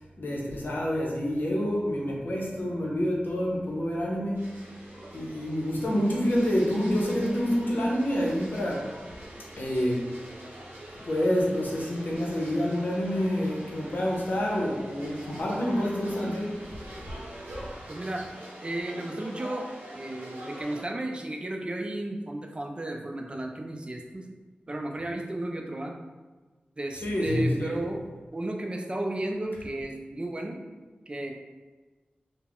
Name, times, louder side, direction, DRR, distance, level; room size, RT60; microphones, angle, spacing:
voice 1, 0.2-4.6 5.1-8.9 9.6-10.1 11.0-16.6 27.0-27.8, equal, 65° left, -3 dB, 0.7 m, -27 dB
sound 1, 4.3-20.8, right 1 dB, 85° right, 0.7 m, -44 dB
voice 2, 17.9-18.3 18.6-19.7 19.9-24.3 24.7-26.0 26.8-28.0 28.3-30.6 31.1-31.3, right 1 dB, 30° right, 2 dB, 0.4 m, -34 dB
2.3 x 2.1 x 3.5 m, 1.3 s
cardioid pair, 50°, 3 cm